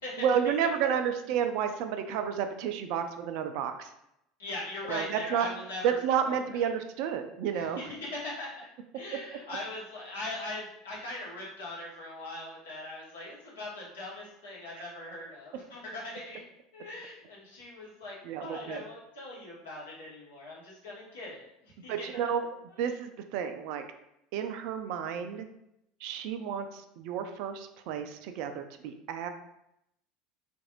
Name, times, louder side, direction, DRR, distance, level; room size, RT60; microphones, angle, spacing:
voice 1, 0.2-3.9 4.9-5.5 5.8-7.9 18.2-18.8 21.9-22.5 22.8-23.8 24.3-25.5 26.0-29.3, right 8 dB, 55° right, 8 dB, 0.3 m, -31 dB
voice 2, 4.4-6.0 6.2-6.7 7.5-8.7 8.9-16.4 16.7-22.1 22.7-22.9, left 2 dB, 70° left, -5 dB, 1.1 m, -41 dB
3.7 x 2.5 x 2.9 m, 0.80 s
figure-of-eight pair, 70°, 0 cm